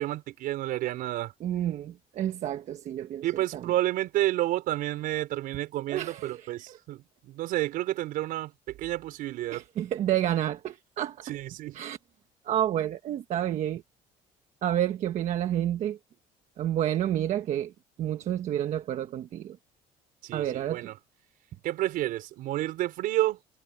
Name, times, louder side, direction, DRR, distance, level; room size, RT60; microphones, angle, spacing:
voice 1, 0.0-1.3 3.2-9.6 11.3-11.8 20.2-21.0 21.6-23.4, right 15 dB, 70° right, 5.2 m, -30 dB
voice 2, 1.4-3.2 3.5-3.7 5.9-6.5 9.5-11.2 11.7-12.0 12.4-13.8 14.6-16.0 16.6-17.7 18.0-19.6 20.3-20.9, right 11 dB, 50° right, 1.3 m, -29 dB
cardioid pair, 150°, 15 cm